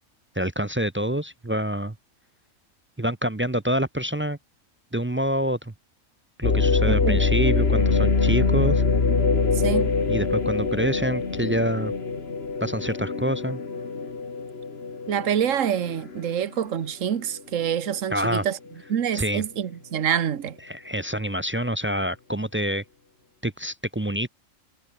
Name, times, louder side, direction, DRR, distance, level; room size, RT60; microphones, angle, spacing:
voice 1, 0.4-1.9 3.0-4.4 4.9-5.7 6.4-8.8 10.1-11.9 12.6-13.6 18.1-18.4 19.1-19.4 20.6-22.8 23.4-24.3, equal, 15° right, 0.4 m, -26 dB
sound 1, 6.4-16.4 16.9-17.0 17.6-18.0, left 4 dB, 50° left, 2.2 m, -24 dB
voice 2, 6.9-7.2 9.6-9.9 15.1-18.6 18.9-20.6, right 9 dB, 70° right, 1.5 m, -26 dB
omnidirectional pair, 1.4 m